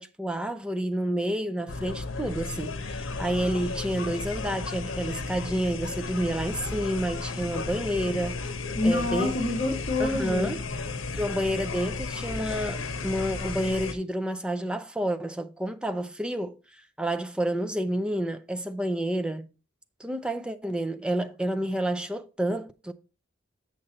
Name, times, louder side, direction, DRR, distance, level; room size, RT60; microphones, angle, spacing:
voice 1, 0.0-8.5 8.8-9.3 10.0-10.6 11.1-19.5 20.0-22.9, right 1 dB, 5° right, 0.5 m, -29 dB
sound 1, 1.7-13.9, left 3 dB, 85° left, 0.8 m, -34 dB
voice 2, 8.7-10.5, left 2 dB, 40° left, 1.3 m, -26 dB
7.2 x 6.5 x 4.0 m
head